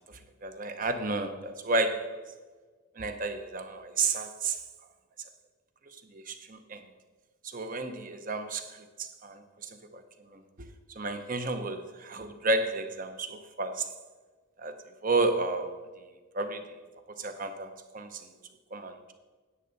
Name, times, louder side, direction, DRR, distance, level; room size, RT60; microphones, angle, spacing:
voice 1, 0.1-2.2 3.0-4.6 6.1-6.8 7.4-10.0 10.3-10.4 10.9-13.9 14.6-14.8 15.0-15.8 16.3-16.7 17.2-18.3 18.7-19.1, right 3 dB, 40° right, 8 dB, 0.8 m, -32 dB
9.9 x 8.7 x 4.0 m, 1.4 s
head